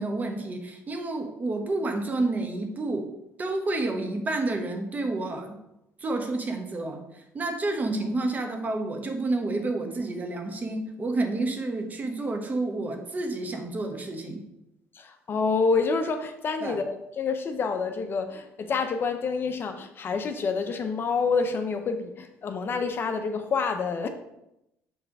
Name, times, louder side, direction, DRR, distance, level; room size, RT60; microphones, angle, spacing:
voice 1, 0.0-3.1 3.4-5.6 6.0-14.4 16.6-16.8, right 2 dB, 30° right, 4 dB, 1.2 m, -29 dB
voice 2, 14.9-24.1, left 4 dB, 45° left, 7 dB, 0.7 m, -28 dB
6.3 x 3.3 x 6.0 m, 0.86 s
cardioid pair, 100°, 5 cm